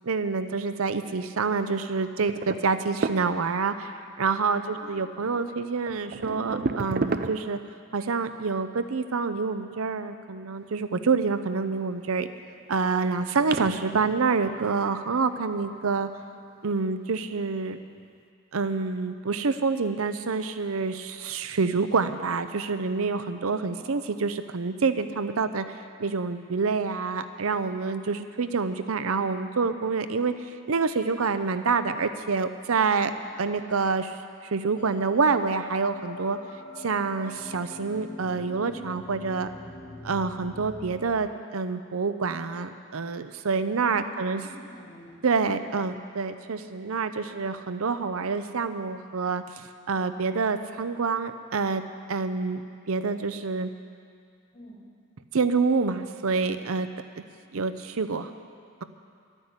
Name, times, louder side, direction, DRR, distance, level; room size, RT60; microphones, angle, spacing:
voice 1, 0.0-3.9 4.2-7.6 7.9-12.3 12.7-16.1 16.6-17.8 18.5-30.3 30.7-33.1 33.4-36.4 36.8-39.5 40.0-44.4 45.2-51.8 52.1-52.6 52.9-53.7 55.3-56.9 57.5-58.3, right 4 dB, 85° right, 10 dB, 0.6 m, -27 dB
sound 1, 2.3-3.7 5.2-5.3 5.9-7.8 11.6-12.2 12.9-13.0 13.4-15.4 16.3-16.6 17.4-17.5 18.0-18.1, right 4 dB, 45° right, 0.4 m, -33 dB
voice 2, 23.5-23.9 33.1-33.3 39.9-40.1 44.1-45.1 54.5-54.8, left 1 dB, 60° left, -5 dB, 4.2 m, -49 dB
sound 2, 34.8-41.0, left 2 dB, 35° left, 1.1 m, -43 dB
11.5 x 9.8 x 8.1 m, 2.3 s
head